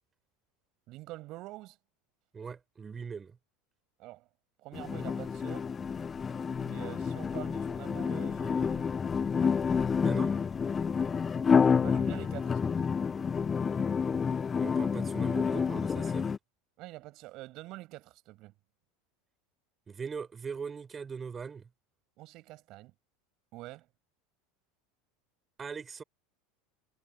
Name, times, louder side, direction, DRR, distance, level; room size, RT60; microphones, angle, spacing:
voice 1, 0.9-1.8 4.0-4.3 4.6-5.7 6.5-8.9 11.8-12.9 16.8-18.5 22.2-22.9 23.5-23.9, right 19 dB, 50° right, 6.6 m, -46 dB
voice 2, 2.3-3.4 10.0-10.3 14.6-16.3 19.9-21.7 25.6-26.0, right 6 dB, 25° right, 5.4 m, -40 dB
sound 1, 4.7-16.4, left 6 dB, 25° left, 0.5 m, -29 dB
figure-of-eight pair, 75°, 0 cm